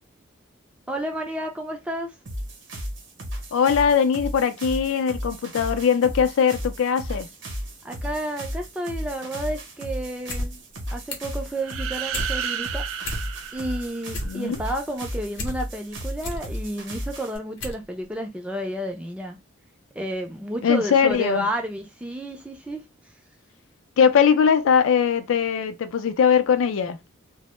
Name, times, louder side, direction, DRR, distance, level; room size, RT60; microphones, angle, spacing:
voice 1, 0.9-2.1 7.8-10.6 10.9-13.2 13.5-19.4 20.0-22.8, right 1 dB, 5° right, 0.3 m, -31 dB
sound 1, 2.3-17.4, equal, 60° right, 0.7 m, -34 dB
voice 2, 3.5-7.3 14.2-14.6 20.6-21.5 24.0-27.0, left 7 dB, 80° left, 0.4 m, -20 dB
sound 2, 10.3-10.5 10.8-11.4 11.8-12.3 12.7-12.8 13.0-13.6 13.9-15.5 15.9-16.5 17.0-17.1 17.6-17.8 18.1-18.2, left 1 dB, 65° left, 0.7 m, -32 dB
sound 3, 11.6-14.5, right 8 dB, 85° right, 0.4 m, -32 dB
2.0 x 2.0 x 2.9 m
head